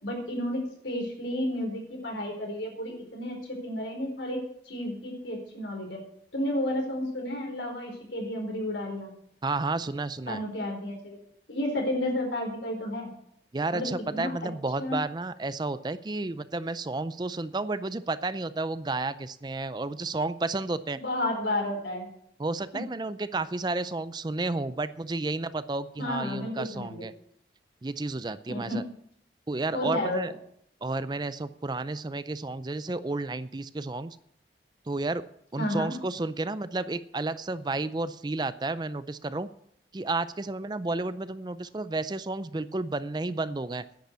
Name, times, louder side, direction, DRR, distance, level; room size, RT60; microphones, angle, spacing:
voice 1, 0.0-4.4 4.6-6.0 6.3-9.1 10.3-11.2 11.5-13.1 13.7-14.3 14.8-15.0 20.9-22.1 22.7-22.8 26.0-27.1 28.5-28.8 29.7-30.2 35.6-35.9, left 1 dB, 90° left, 1 dB, 4.4 m, -32 dB
voice 2, 9.4-10.4 13.5-21.0 22.4-27.1 27.8-28.8 29.5-30.3 30.8-34.2 34.9-35.2 35.5-39.5 39.9-43.8, right 2 dB, 25° right, 14 dB, 0.4 m, -31 dB
10.5 x 8.3 x 8.2 m, 0.70 s
head